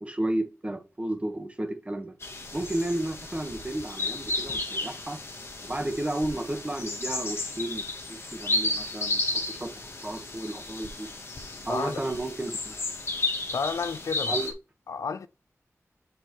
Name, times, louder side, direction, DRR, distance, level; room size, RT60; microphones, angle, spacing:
voice 1, 0.0-2.1 2.5-5.2 5.6-9.2 9.5-9.7 10.0-11.1 11.6-12.8 14.3-14.5, right 1 dB, 25° right, 1.3 m, -32 dB
sound 1, 2.2-14.5, left 2 dB, 50° left, 1.3 m, -33 dB
voice 2, 11.7-12.0 13.5-14.3 14.9-15.3, left 5 dB, 85° left, 0.5 m, -31 dB
7.4 x 5.1 x 3.1 m
wide cardioid pair, 100°, 5 cm